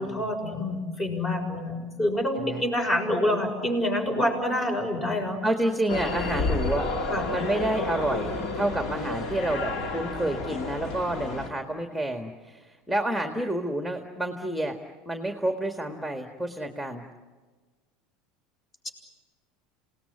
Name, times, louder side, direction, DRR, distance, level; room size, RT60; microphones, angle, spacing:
voice 1, 0.0-5.4 7.1-7.3 18.8-18.9, left 1 dB, 30° left, 4 dB, 6.7 m, -27 dB
voice 2, 5.4-6.9 7.3-14.8 15.1-17.0, right 1 dB, 5° left, 5 dB, 1.9 m, -29 dB
sound 1, 5.9-11.5, left 3 dB, 50° left, 2.3 m, -31 dB
28.0 x 18.5 x 9.8 m, 1.4 s
hypercardioid pair, 75°, 0 cm